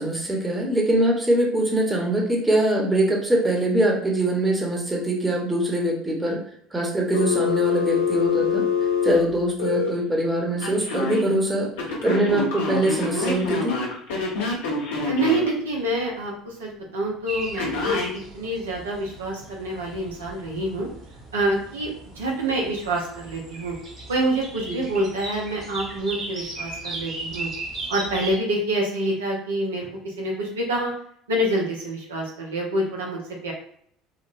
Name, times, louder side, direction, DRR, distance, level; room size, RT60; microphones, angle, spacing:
voice 1, 0.0-6.4 6.7-8.7 9.0-11.7 12.0-13.8 24.7-24.8, right 1 dB, 15° right, 0 dB, 0.9 m, -23 dB
Telephone, 7.1-9.9 10.6-11.2 11.8-15.5 17.6-18.1, left 5 dB, 75° left, 0.8 m, -25 dB
voice 2, 15.1-20.9 21.3-21.9 22.2-23.7 24.1-27.5 27.9-30.9 31.3-33.5, right 1 dB, 85° right, -2 dB, 0.7 m, -27 dB
sound 1, 17.3-28.4, right 2 dB, 45° right, 1.2 m, -37 dB
3.9 x 2.2 x 2.5 m, 0.65 s
hypercardioid pair, 65°, 0 cm